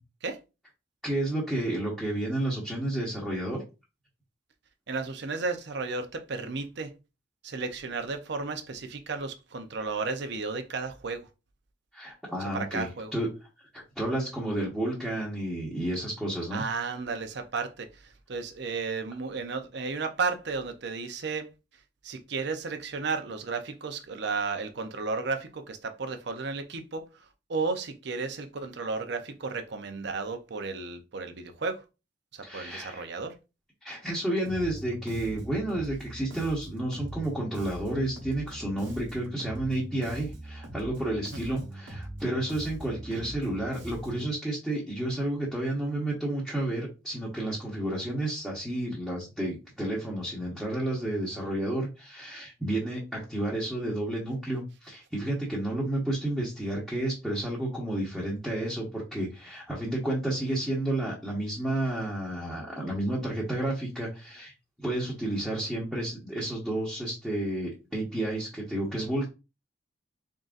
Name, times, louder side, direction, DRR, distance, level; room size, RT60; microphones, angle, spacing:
voice 1, 1.0-3.6 11.9-13.3 13.7-16.6 32.4-33.1 33.8-64.5 64.8-69.3, right 1 dB, ahead, 1.0 m, -31 dB
voice 2, 4.9-6.9 7.4-11.3 12.4-13.1 16.5-21.5 22.0-31.8 32.3-33.3 41.5-41.6 43.1-43.3, right 4 dB, 65° right, 0.6 m, -33 dB
Bass guitar, 34.4-44.3, right 1 dB, 90° right, 1.1 m, -41 dB
3.9 x 3.7 x 2.5 m
head